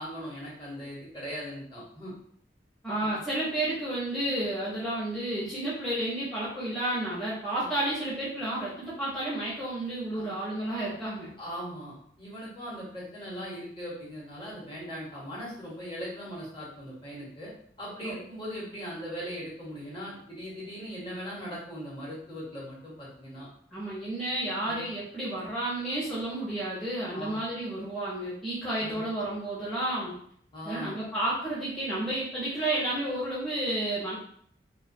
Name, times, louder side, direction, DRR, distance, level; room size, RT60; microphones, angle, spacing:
voice 1, 0.0-2.1 10.1-10.3 11.4-17.5 17.8-23.5 24.6-24.8 27.1-27.4 28.8-29.0 30.5-30.9, equal, 30° left, -7 dB, 0.9 m, -39 dB
voice 2, 2.8-11.3 18.0-18.2 23.7-30.1 30.6-34.2, right 1 dB, ahead, -10 dB, 0.6 m, -31 dB
2.2 x 2.2 x 2.6 m, 0.63 s
head